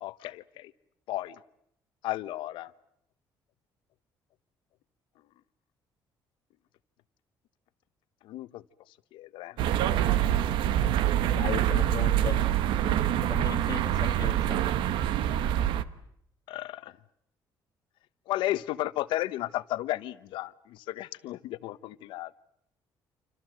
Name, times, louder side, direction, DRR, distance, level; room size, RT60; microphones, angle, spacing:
voice 1, 0.0-0.7 1.1-1.4 2.0-2.7 8.2-8.6 9.1-9.6 12.9-13.0 16.5-16.9 18.3-22.4, left 15 dB, 85° left, 15 dB, 1.1 m, -34 dB
sound 1, 9.6-15.8, right 11 dB, 80° right, 1.2 m, -25 dB
voice 2, 11.3-12.4 13.3-14.6, left 8 dB, 45° left, 8 dB, 1.9 m, -37 dB
28.5 x 25.5 x 7.8 m, 0.72 s
cardioid pair, 180°, 8 cm